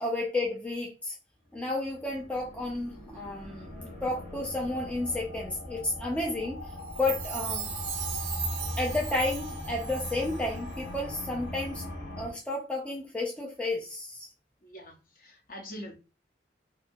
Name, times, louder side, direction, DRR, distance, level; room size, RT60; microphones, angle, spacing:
voice 1, 0.0-1.2 1.5-6.6 7.0-7.7 8.8-11.8 12.2-14.3, left 2 dB, 5° left, -1 dB, 0.3 m, -32 dB
sound 1, 1.6-12.3, left 1 dB, 80° left, 1.1 m, -39 dB
Chime, 6.8-10.5 10.7-10.8, right 8 dB, 75° right, 0.5 m, -37 dB
voice 2, 14.6-15.9, equal, 50° left, 1 dB, 0.7 m, -44 dB
2.7 x 2.2 x 2.6 m, 0.31 s
head